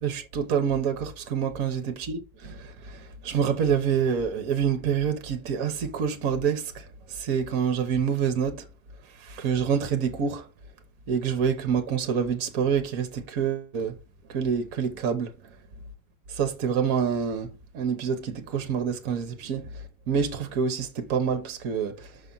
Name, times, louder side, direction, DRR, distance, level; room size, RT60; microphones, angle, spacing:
voice 1, 0.0-8.7 9.2-10.5 11.1-14.0 14.3-15.3 16.3-19.7 20.1-22.2, right 7 dB, 55° right, 1.4 m, -27 dB
6.1 x 5.7 x 3.9 m
omnidirectional pair, 1.9 m